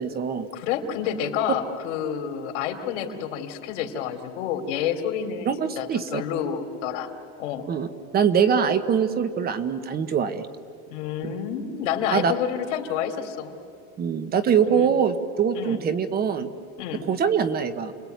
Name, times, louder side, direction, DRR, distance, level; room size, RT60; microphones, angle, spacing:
voice 1, 0.0-0.5 5.5-6.2 7.7-7.9 8.1-10.4 11.2-11.3 12.1-12.3 14.0-16.5 17.1-17.9, right 7 dB, 25° right, 11 dB, 1.2 m, -23 dB
voice 2, 0.5-5.5 5.8-7.1 7.4-7.7 10.9-13.6 14.7-14.9 15.5-15.8 16.8-17.1, left 8 dB, 85° left, 6 dB, 3.2 m, -29 dB
30.0 x 21.0 x 9.4 m, 2.5 s
cardioid pair, 160°, 35 cm